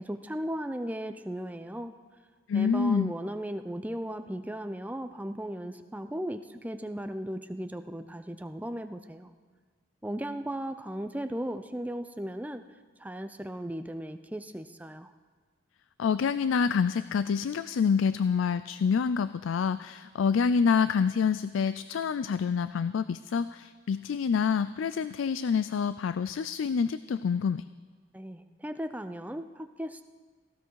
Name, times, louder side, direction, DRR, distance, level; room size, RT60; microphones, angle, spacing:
voice 1, 0.0-1.9 2.5-9.3 10.0-12.6 13.0-15.1 28.1-30.1, right 1 dB, 10° right, 9 dB, 0.5 m, -36 dB
voice 2, 2.5-3.1 16.0-27.6, left 6 dB, 85° left, 15 dB, 0.4 m, -27 dB
17.5 x 16.0 x 4.7 m, 1.5 s
head